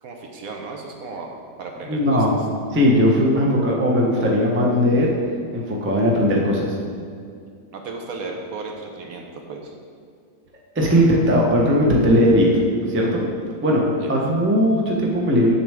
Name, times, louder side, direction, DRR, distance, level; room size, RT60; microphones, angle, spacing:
voice 1, 0.0-1.3 1.6-2.3 7.7-9.8 14.0-14.1, right 3 dB, 65° right, 1 dB, 1.1 m, -34 dB
voice 2, 1.8-2.3 2.7-5.1 5.5-6.7 10.7-12.5 12.9-13.2 13.6-15.5, equal, 10° right, -2 dB, 0.5 m, -18 dB
7.4 x 6.8 x 3.5 m, 2.3 s
omnidirectional pair, 1.8 m